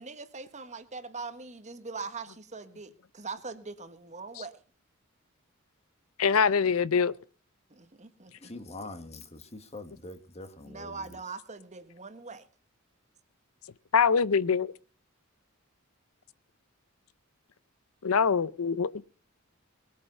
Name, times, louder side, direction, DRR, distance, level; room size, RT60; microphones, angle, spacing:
voice 1, 0.0-4.6 7.7-8.5 10.6-12.5, right 4 dB, 35° right, 1.5 m, -42 dB
voice 2, 6.2-7.1 13.9-14.7 18.0-19.0, left 6 dB, 80° left, 0.6 m, -24 dB
voice 3, 8.4-11.0, left 2 dB, 30° left, 1.8 m, -44 dB
20.5 x 8.8 x 5.6 m
head